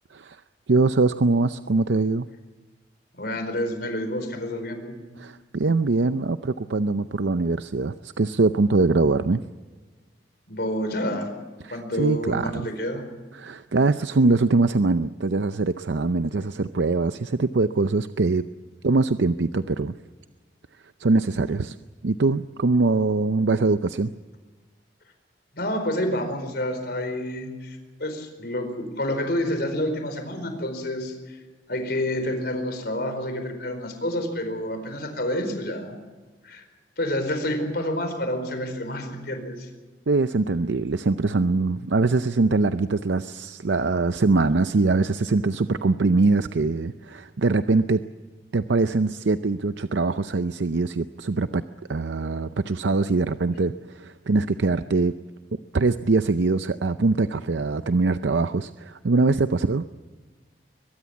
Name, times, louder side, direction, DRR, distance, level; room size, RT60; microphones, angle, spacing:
voice 1, 0.7-2.3 5.2-9.4 11.6-12.7 13.3-18.4 18.8-19.9 21.0-21.8 22.0-24.1 40.1-48.1 48.5-51.6 51.9-55.2 55.7-59.9, right 3 dB, 75° right, 11 dB, 0.6 m, -23 dB
voice 2, 3.1-4.9 10.5-11.3 11.7-13.0 25.5-31.4 31.7-36.0 36.4-36.6 37.0-39.7, left 1 dB, 60° left, 7 dB, 4.6 m, -28 dB
23.0 x 21.0 x 7.2 m, 1.3 s
head